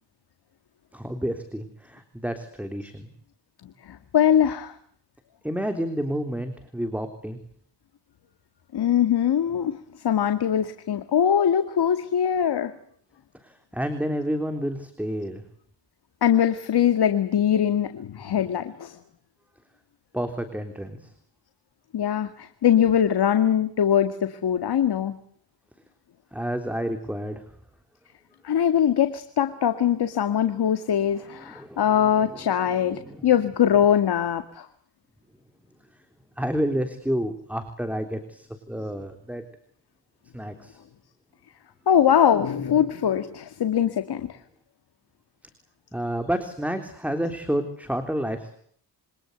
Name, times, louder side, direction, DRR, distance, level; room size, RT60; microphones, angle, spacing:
voice 1, 0.9-3.1 5.4-7.4 13.4-15.4 20.1-21.1 26.3-27.5 31.1-33.3 36.4-39.4 40.3-40.8 45.9-48.6, equal, 5° right, 6 dB, 3.5 m, -30 dB
voice 2, 3.8-4.7 8.7-9.8 10.0-12.7 16.2-19.0 21.9-25.1 28.4-34.7 41.9-44.4, left 9 dB, 65° left, 9 dB, 2.1 m, -22 dB
27.5 x 25.0 x 8.1 m, 0.62 s
cardioid pair, 100°, 42 cm